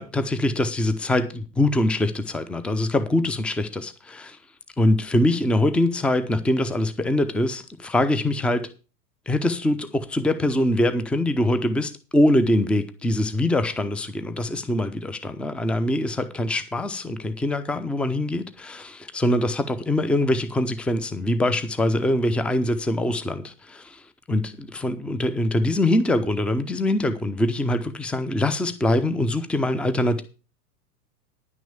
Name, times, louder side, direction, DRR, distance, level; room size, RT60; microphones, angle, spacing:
voice 1, 0.0-4.4 4.8-8.7 9.3-30.2, left 1 dB, ahead, 0.7 m, -23 dB
10.5 x 6.1 x 7.2 m
hypercardioid pair, 100°, 50 cm